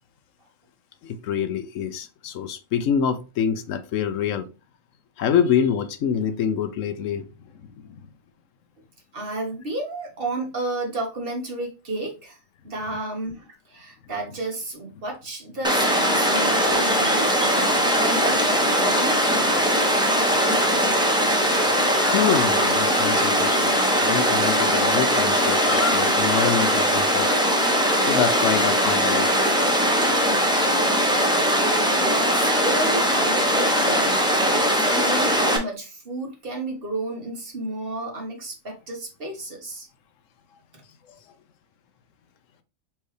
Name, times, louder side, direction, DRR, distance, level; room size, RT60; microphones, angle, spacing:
voice 1, 1.0-4.5 5.2-8.1 22.0-27.3 28.0-29.3 33.8-33.9, left 8 dB, 80° left, 1.0 m, -26 dB
voice 2, 9.1-12.4 12.6-18.4 18.7-19.2 20.7-21.2 22.5-22.6 31.6-34.2 34.7-39.9 40.7-40.8, right 2 dB, 50° right, 1.4 m, -32 dB
Water, 15.6-35.6, equal, 5° right, 0.8 m, -20 dB
4.4 x 3.3 x 3.2 m
omnidirectional pair, 1.3 m